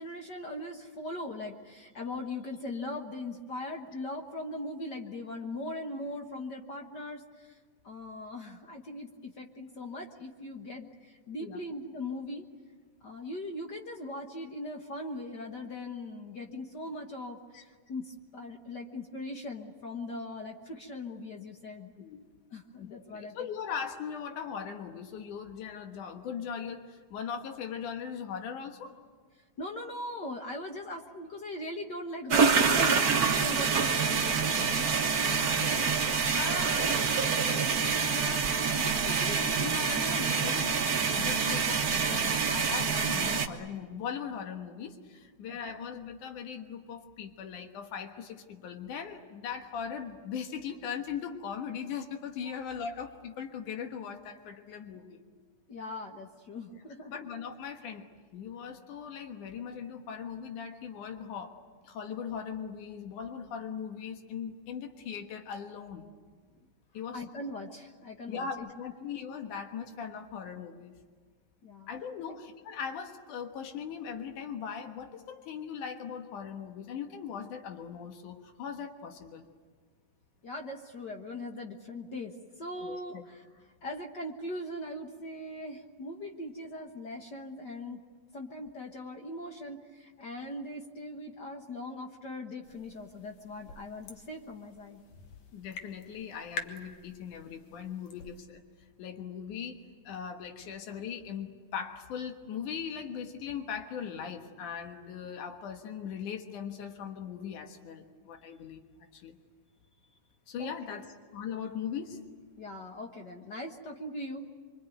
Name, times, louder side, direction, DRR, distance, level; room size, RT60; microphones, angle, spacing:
voice 1, 0.0-7.6 7.8-12.4 13.0-21.9 22.5-23.5 29.6-35.1 35.4-35.7 45.5-45.8 52.4-52.6 55.7-57.2 67.1-68.7 71.6-71.9 72.3-72.4 80.4-88.0 88.3-95.0 110.6-111.0 112.6-114.5, left 1 dB, 45° left, 3 dB, 1.5 m, -40 dB
voice 2, 22.7-29.0 34.8-35.9 36.3-37.7 38.1-55.2 56.7-56.8 57.1-61.5 61.8-66.1 66.9-67.2 68.3-70.9 71.9-79.5 82.8-83.2 95.5-98.6 99.0-99.8 100.0-108.8 109.1-109.4 110.5-111.1 111.3-112.2, left 7 dB, 85° left, 5 dB, 2.9 m, -39 dB
sound 1, 32.3-43.5, right 5 dB, 50° right, 1.2 m, -27 dB
sound 2, 92.6-98.4, left 4 dB, 65° left, 2.7 m, -46 dB
25.5 x 24.5 x 9.2 m, 1.5 s
omnidirectional pair, 3.4 m